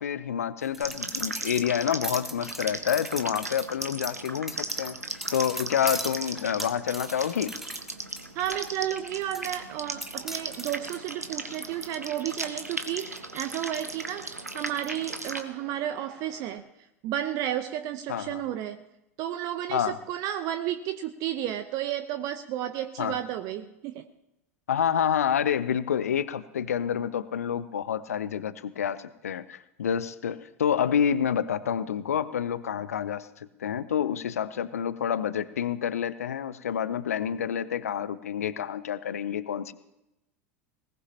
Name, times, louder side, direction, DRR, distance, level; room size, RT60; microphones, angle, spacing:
voice 1, 0.0-5.0 5.3-7.6 18.1-18.4 19.7-20.0 23.0-23.2 24.7-39.7, left 8 dB, 75° left, 15 dB, 0.6 m, -28 dB
sound 1, 0.6-8.2 8.7-8.8 9.3-9.6 10.0-10.7, right 1 dB, 5° right, 0.5 m, -39 dB
sound 2, 0.8-15.4, right 2 dB, 90° right, 1.0 m, -37 dB
voice 2, 8.3-14.3 14.5-16.6 17.0-18.8 19.2-24.1, right 11 dB, 45° right, 10 dB, 0.7 m, -32 dB
sound 3, 10.2-16.6, right 5 dB, 65° right, 4.2 m, -52 dB
20.5 x 18.5 x 2.9 m, 0.89 s
figure-of-eight pair, 80°, 8 cm